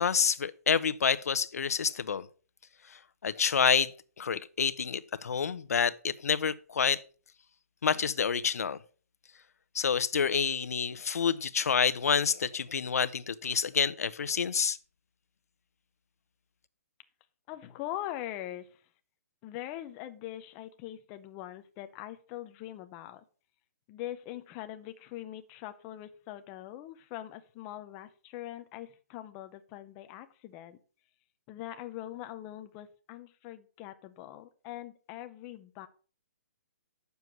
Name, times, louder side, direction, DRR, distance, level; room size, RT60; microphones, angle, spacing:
voice 1, 0.0-2.3 3.2-3.9 4.2-7.0 7.8-8.8 9.7-14.8, left 6 dB, 70° left, 0.8 m, -28 dB
voice 2, 17.5-18.8 19.4-23.2 23.9-30.8 31.5-35.9, left 13 dB, 15° left, 0.6 m, -42 dB
9.5 x 6.9 x 6.0 m
hypercardioid pair, 175°, 9 cm